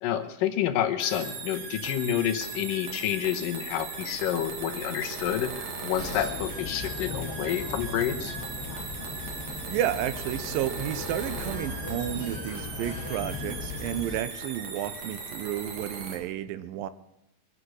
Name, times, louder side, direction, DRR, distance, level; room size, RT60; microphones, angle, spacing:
voice 1, 0.0-8.4, left 10 dB, 75° left, 7 dB, 2.6 m, -29 dB
sound 1, 1.0-16.2, right 4 dB, 50° right, 3.0 m, -38 dB
sound 2, 6.0-14.2, left 4 dB, 40° left, 1.5 m, -38 dB
voice 2, 9.7-16.9, right 12 dB, 85° right, 13 dB, 2.5 m, -32 dB
22.5 x 9.9 x 6.3 m, 0.85 s
omnidirectional pair, 4.1 m